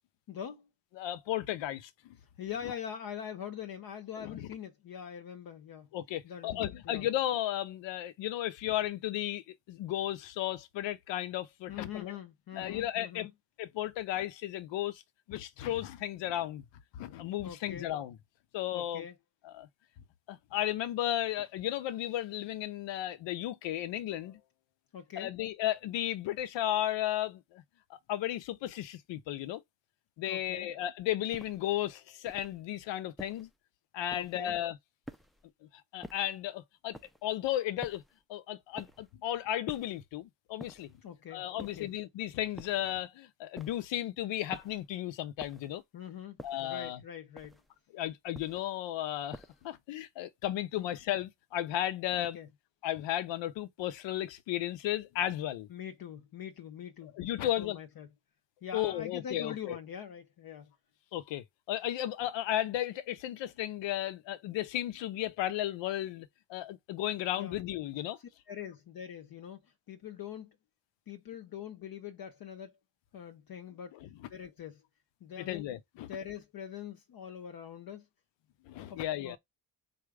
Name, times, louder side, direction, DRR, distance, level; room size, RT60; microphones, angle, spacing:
voice 1, 0.3-0.7 2.4-5.9 6.2-7.1 11.7-13.3 17.4-17.9 18.7-19.2 24.9-25.3 30.3-30.7 34.1-34.6 41.0-41.9 45.9-47.6 50.8-50.9 52.2-52.5 55.7-57.1 57.4-58.1 58.6-60.7 67.4-67.6 68.5-70.6 71.1-72.7 73.1-74.0 74.3-74.8 75.2-75.7 76.1-78.1 78.9-79.4, left 9 dB, 55° left, 0.8 m, -43 dB
voice 2, 1.0-2.2 4.2-4.5 5.9-12.1 12.5-13.3 13.6-15.0 15.3-16.6 16.9-18.2 18.5-19.0 19.4-19.7 20.3-24.4 25.2-27.6 27.9-29.6 30.2-33.5 33.9-34.8 35.7-38.0 38.3-40.9 41.3-45.8 46.4-47.0 47.9-52.4 52.8-55.7 57.1-57.8 58.7-59.8 61.1-68.2 73.9-74.1 75.4-76.1 78.7-79.4, left 13 dB, 80° left, 0.7 m, -34 dB
sound 1, 31.3-31.7 32.2-32.6 33.2-33.6 34.1-34.5 35.0-35.5 36.0-36.4 36.9-37.3 37.8-38.2 38.8-39.1 39.7-40.1 40.6-41.0 41.6-42.0 42.6-43.0 43.6-44.0 44.5-44.9 45.4-45.8 46.4-46.8 47.4-47.8 48.3-48.8 49.3-49.7, equal, ahead, 0.4 m, -49 dB
4.2 x 2.4 x 4.8 m
cardioid pair, 85°, 44 cm